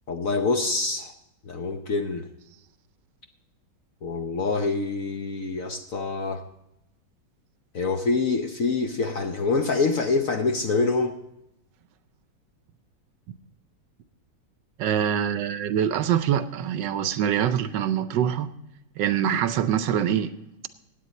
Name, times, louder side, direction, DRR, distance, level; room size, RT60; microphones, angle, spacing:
voice 1, 0.1-1.1 1.4-2.3 4.0-6.4 7.7-11.2, left 3 dB, 60° left, 5 dB, 0.9 m, -25 dB
voice 2, 14.8-18.5 19.0-20.3, right 9 dB, 70° right, 12 dB, 1.2 m, -24 dB
16.0 x 9.2 x 4.1 m, 0.86 s
omnidirectional pair, 2.1 m